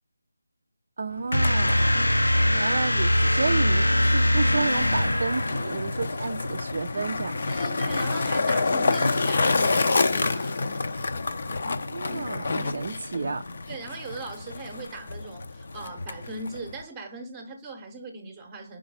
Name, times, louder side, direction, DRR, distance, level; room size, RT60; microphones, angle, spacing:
voice 1, 1.0-1.9 2.5-7.4 11.6-13.4, right 4 dB, 45° right, 0.4 m, -31 dB
Skateboard, 1.1-16.8, left 3 dB, 45° left, 0.6 m, -29 dB
sound 1, 1.3-6.0, equal, 80° left, 0.7 m, -22 dB
voice 2, 7.5-10.6 12.5-12.7 13.1-13.4 13.7-18.8, right 3 dB, 15° right, 0.8 m, -39 dB
5.1 x 3.9 x 4.7 m
figure-of-eight pair, 160°, 0 cm